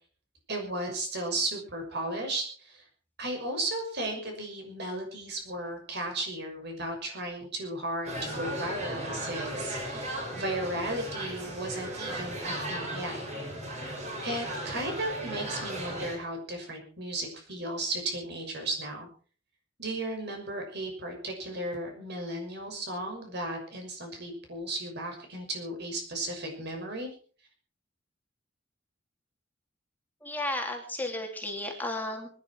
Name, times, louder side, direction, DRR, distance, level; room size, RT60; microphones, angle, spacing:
voice 1, 0.5-2.8 3.2-13.2 14.2-19.1 19.8-27.1, right 1 dB, 55° right, 3 dB, 6.2 m, -35 dB
sound 1, 8.1-16.2, right 1 dB, 35° right, 6.5 m, -36 dB
voice 2, 30.2-32.3, left 1 dB, 10° left, 1 dB, 2.8 m, -33 dB
24.5 x 11.0 x 4.6 m, 0.41 s
head